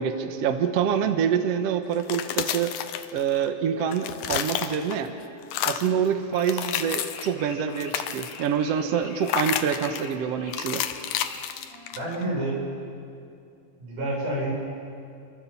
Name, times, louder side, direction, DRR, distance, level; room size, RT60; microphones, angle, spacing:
voice 1, 0.0-2.7 3.1-5.1 5.6-10.8, right 7 dB, 65° right, 7 dB, 1.9 m, -26 dB
sound 1, 1.9-3.5 3.8-5.1 5.4-6.0 6.4-7.3 7.7-8.5 9.3-10.1 10.5-12.2, left 10 dB, 85° left, 2.5 m, -30 dB
Wind instrument woodwind instrument, 4.0-12.6, left 1 dB, 45° right, 6.4 m, -51 dB
sound 2, 6.3-11.4, left 4 dB, 45° left, 2.9 m, -44 dB
voice 2, 11.9-12.6 13.8-14.5, right 1 dB, 85° right, -3 dB, 8.7 m, -29 dB
29.5 x 24.0 x 7.1 m, 2.5 s
omnidirectional pair, 3.5 m